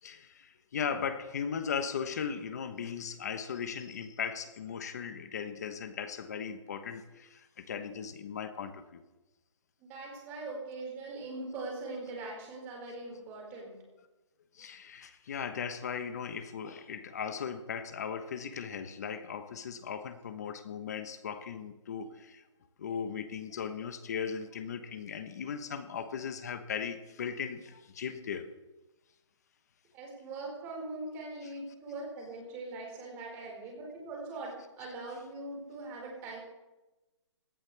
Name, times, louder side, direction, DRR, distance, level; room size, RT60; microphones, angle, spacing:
voice 1, 0.0-9.0 14.5-22.4 22.8-28.5, left 7 dB, 35° left, 10 dB, 1.1 m, -38 dB
voice 2, 9.8-13.8 29.9-36.4, right 2 dB, 15° right, -2 dB, 5.0 m, -41 dB
22.5 x 18.0 x 3.4 m, 1.1 s
hypercardioid pair, 175°, 16 cm